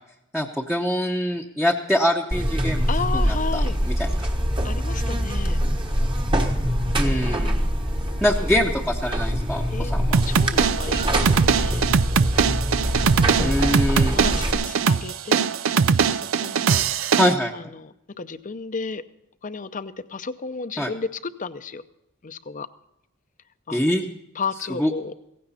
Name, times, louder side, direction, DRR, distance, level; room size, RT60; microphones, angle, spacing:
voice 1, 0.3-4.3 7.0-7.6 8.2-10.2 13.4-14.2 17.2-17.5 20.8-20.9 23.7-24.0 24.8-24.9, left 1 dB, ahead, 0 dB, 0.9 m, -24 dB
Buzz, 2.3-14.5, equal, 25° right, 1.3 m, -24 dB
voice 2, 2.9-3.8 4.6-5.6 7.1-7.7 9.7-11.9 13.0-13.7 14.0-15.5 15.7-17.2 17.5-19.0 19.4-21.8 22.2-22.7 23.7-24.0 24.3-25.1, left 4 dB, 40° left, 12 dB, 0.7 m, -33 dB
sound 1, 10.1-17.3, right 6 dB, 75° right, 0.5 m, -21 dB
16.5 x 15.5 x 4.2 m, 0.82 s
head